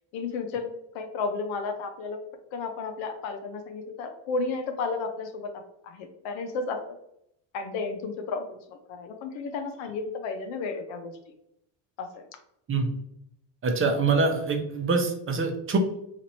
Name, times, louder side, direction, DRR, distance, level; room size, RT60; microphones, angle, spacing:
voice 1, 0.1-0.7 0.9-2.2 2.5-6.8 7.5-11.2 12.0-12.2, left 4 dB, 85° left, 5 dB, 0.7 m, -33 dB
voice 2, 13.6-15.8, right 4 dB, 30° right, 4 dB, 0.6 m, -25 dB
2.9 x 2.6 x 4.0 m, 0.76 s
cardioid pair, 120°, 46 cm